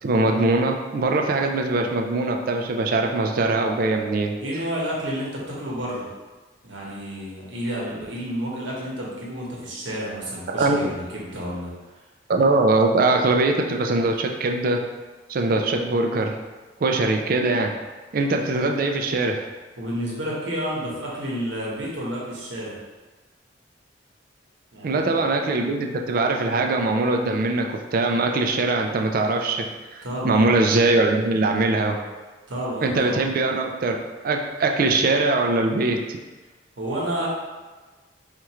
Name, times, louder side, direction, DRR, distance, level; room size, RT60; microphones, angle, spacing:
voice 1, 0.0-4.4 10.5-10.8 12.3-14.8 15.3-16.4 16.8-17.8 18.1-19.5 24.8-32.0 32.8-34.0 34.2-36.1, right 2 dB, 50° right, 3 dB, 0.4 m, -22 dB
voice 2, 4.4-6.1 6.6-11.7 18.5-18.6 19.8-22.8 24.7-25.2 30.0-30.4 32.5-33.2 36.8-37.3, equal, 85° right, -4 dB, 1.0 m, -30 dB
4.3 x 2.4 x 2.9 m, 1.3 s
head